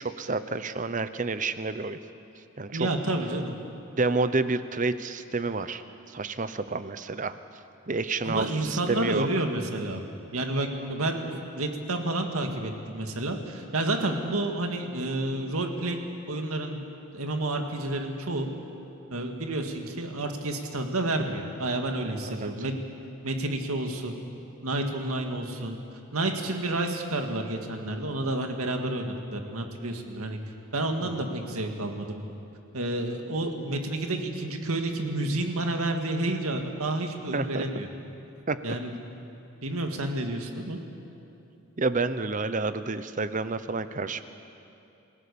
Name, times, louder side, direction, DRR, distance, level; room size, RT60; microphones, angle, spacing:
voice 1, 0.0-2.0 2.6-2.9 4.0-7.4 7.9-9.3 22.3-22.5 30.2-30.3 31.0-31.1 37.3-37.7 38.5-38.6 41.8-44.2, right 3 dB, 35° right, 12 dB, 0.8 m, -29 dB
voice 2, 2.7-3.6 8.2-10.0 10.3-16.0 16.3-16.8 17.1-18.5 19.1-22.7 23.2-24.2 24.6-25.8 26.1-30.4 30.7-32.2 32.7-37.9 38.6-38.9 39.6-40.8, right 2 dB, 85° right, 4 dB, 2.1 m, -30 dB
28.0 x 17.0 x 7.1 m, 2.8 s
head